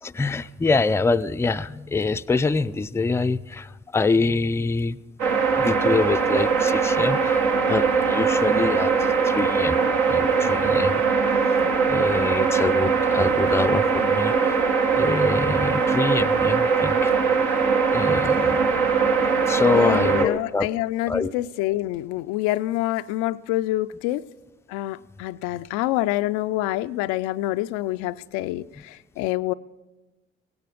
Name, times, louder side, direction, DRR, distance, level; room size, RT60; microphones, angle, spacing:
voice 1, 0.0-5.0 5.5-7.4 7.7-9.8 10.1-11.0 11.6-14.6 14.9-17.1 17.9-18.8 19.5-20.7 21.0-21.3 25.5-25.7, left 4 dB, 10° left, 0.4 m, -25 dB
sound 1, 5.2-20.2, right 5 dB, 70° right, 1.5 m, -21 dB
voice 2, 19.6-24.3 24.7-29.5, left 16 dB, 70° left, 0.5 m, -26 dB
17.5 x 16.5 x 5.0 m
hypercardioid pair, 55°, 30 cm